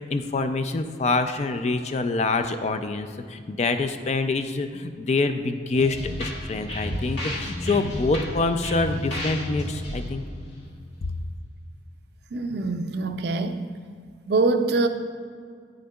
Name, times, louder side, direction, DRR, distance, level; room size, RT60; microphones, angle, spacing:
voice 1, 0.0-10.3, left 3 dB, 35° left, 8 dB, 0.3 m, -26 dB
sound 1, 5.7-11.4, equal, 75° left, 1.8 m, -32 dB
voice 2, 12.3-13.7 14.3-14.9, right 3 dB, 60° right, 8 dB, 0.4 m, -24 dB
9.3 x 6.4 x 2.3 m, 2.1 s
head